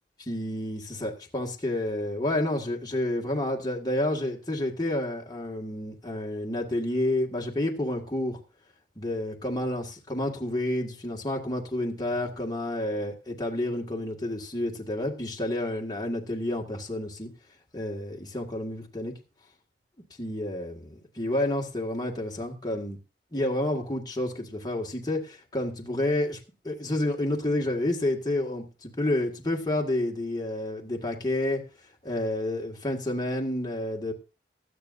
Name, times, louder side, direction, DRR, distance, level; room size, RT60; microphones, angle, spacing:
voice 1, 0.3-8.4 9.0-17.3 17.7-19.1 20.2-23.0 23.3-26.4 26.6-31.6 32.0-34.1, left 1 dB, 25° left, 0 dB, 1.8 m, -29 dB
17.0 x 12.5 x 2.6 m, 0.30 s
head